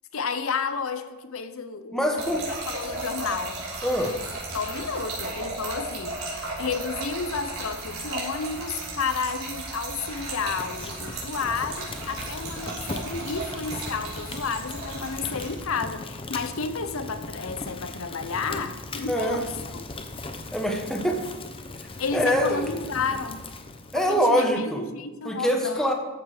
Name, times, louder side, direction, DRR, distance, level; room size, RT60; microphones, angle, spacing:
voice 1, 0.1-2.2 2.7-3.6 4.5-19.9 22.0-23.4 23.9-25.9, left 5 dB, 70° left, 10 dB, 0.7 m, -31 dB
voice 2, 1.9-2.4 3.8-4.1 19.1-19.4 20.5-21.2 22.1-22.6 23.9-24.8 25.2-25.9, equal, ahead, 2 dB, 1.2 m, -24 dB
Trickle dribble / Fill (with liquid), 2.2-15.6, right 2 dB, 85° right, 4.1 m, -35 dB
Fire, 10.0-24.4, left 2 dB, 25° left, 0.8 m, -39 dB
13.5 x 7.1 x 5.0 m, 1.2 s
head